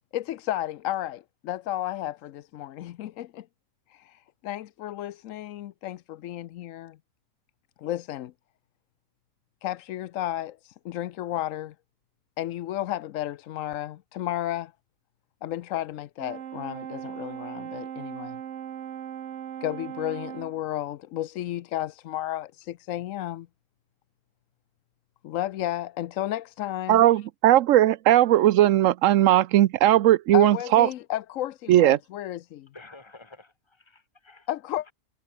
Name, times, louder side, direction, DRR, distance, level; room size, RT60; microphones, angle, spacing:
voice 1, 0.1-3.5 3.9-7.0 7.8-8.3 9.6-11.7 12.4-14.7 15.4-18.4 19.6-23.5 25.2-27.2 30.3-32.7 34.5-34.9, left 13 dB, 90° left, 1.0 m, -33 dB
Brass instrument, 16.2-20.6, right 9 dB, 65° right, 1.2 m, -38 dB
voice 2, 26.9-30.9 31.7-32.0, right 13 dB, 85° right, 1.0 m, -18 dB
voice 3, 32.7-34.5 34.8-34.9, left 3 dB, 20° left, 2.9 m, -50 dB
omnidirectional pair, 1.3 m